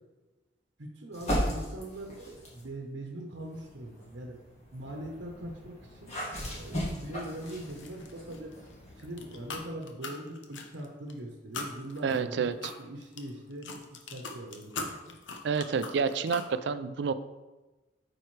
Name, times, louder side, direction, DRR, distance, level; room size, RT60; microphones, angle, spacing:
voice 1, 0.8-4.4 4.7-6.1 6.5-8.5 8.9-12.5 12.8-13.7 14.1-15.1, right 1 dB, 85° right, 0 dB, 0.9 m, -41 dB
sound 1, 1.1-2.7 3.4-9.6, equal, 35° left, 1.9 m, -37 dB
sound 2, 7.5-8.7 9.0-11.1 11.5-16.5, left 3 dB, 90° left, 0.8 m, -41 dB
voice 2, 12.0-12.5 15.4-17.1, right 5 dB, 65° right, 12 dB, 0.4 m, -29 dB
8.7 x 4.7 x 3.2 m, 1.1 s
head